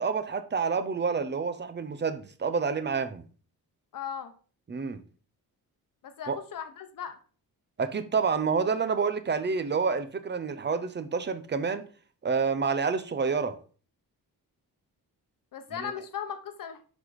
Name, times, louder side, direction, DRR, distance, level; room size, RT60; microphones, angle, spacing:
voice 1, 0.0-3.2 4.7-5.0 6.3-6.4 7.8-11.8 12.2-13.6 15.7-15.9, right 5 dB, 30° right, 0.7 m, -28 dB
voice 2, 3.9-4.3 6.0-7.2 15.5-16.8, left 8 dB, 65° left, 0.9 m, -37 dB
10.0 x 4.3 x 4.7 m
wide cardioid pair, 155°, 36 cm